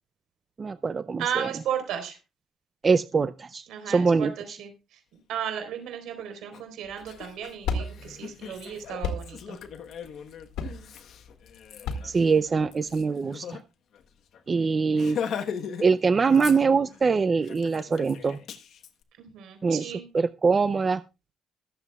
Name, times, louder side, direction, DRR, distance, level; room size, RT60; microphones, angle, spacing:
voice 1, 0.6-1.5 2.8-4.3 12.0-13.6 14.5-15.2 15.8-18.4 19.6-21.0, right 5 dB, 35° right, 13 dB, 0.5 m, -23 dB
voice 2, 1.2-2.2 3.7-5.0 5.3-9.6 19.2-20.1, right 9 dB, 85° right, 6 dB, 4.1 m, -34 dB
Laughter, 6.5-6.6 7.0-13.6 13.9-14.0 14.3-14.5 14.9-15.9 16.2-17.0 17.4-18.9, left 7 dB, 70° left, 1.2 m, -39 dB
sound 1, 6.8-13.0, left 3 dB, 90° left, 2.1 m, -35 dB
23.0 x 7.9 x 2.4 m, 0.27 s
cardioid pair, 90°, 0 cm